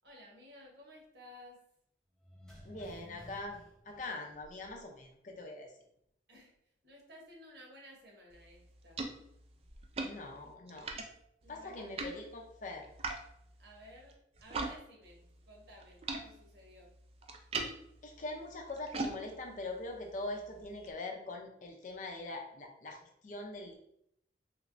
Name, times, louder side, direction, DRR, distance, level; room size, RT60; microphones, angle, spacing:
voice 1, 0.0-1.6 6.3-6.5 6.8-9.0 11.4-11.9 13.6-16.9, left 1 dB, 65° right, -1 dB, 1.1 m, -55 dB
sound 1, 2.2-5.0 5.3-5.4, equal, 5° left, 0.7 m, -54 dB
voice 2, 2.7-3.6 3.9-5.7 10.0-10.9 11.5-12.9 18.0-23.7, left 2 dB, 40° left, 2 dB, 0.5 m, -43 dB
sound 2, 8.3-14.8 15.0-20.9, right 3 dB, 30° right, 0.4 m, -43 dB
3.2 x 3.1 x 2.5 m, 0.73 s
head